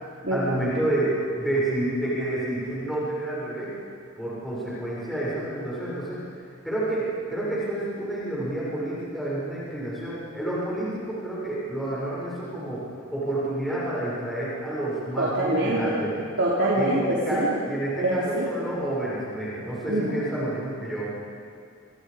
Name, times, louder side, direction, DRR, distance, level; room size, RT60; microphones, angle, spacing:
voice 1, 0.3-3.7 4.2-6.2 6.6-12.8 13.1-16.1 16.7-21.1, right 1 dB, ahead, -9 dB, 7.1 m, -29 dB
voice 2, 15.2-16.0 16.4-17.6 18.0-18.5 19.9-20.2, right 1 dB, 65° right, -6 dB, 3.6 m, -24 dB
28.0 x 26.5 x 5.3 m, 2.5 s
head